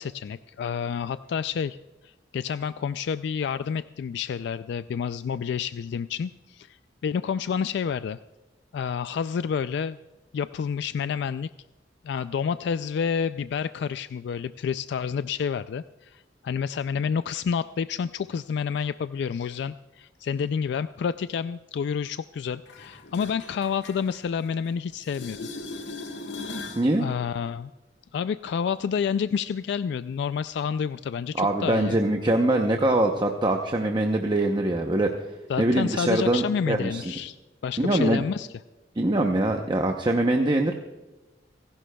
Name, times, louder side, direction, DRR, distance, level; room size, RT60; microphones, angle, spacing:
voice 1, 0.0-1.8 2.0-6.8 7.0-8.2 8.7-10.0 10.3-11.5 12.0-25.5 27.0-27.7 28.1-32.0 35.5-37.4 37.6-38.5, left 7 dB, 65° left, 13 dB, 0.3 m, -29 dB
sound 1, 22.7-24.7 25.0-26.9 32.6-32.7, left 3 dB, 85° left, 1.5 m, -39 dB
voice 2, 26.8-27.1 31.4-35.1 35.6-37.0 37.8-38.2 39.0-40.7, right 1 dB, 25° right, 3 dB, 0.7 m, -23 dB
29.5 x 11.5 x 2.3 m, 1.1 s
head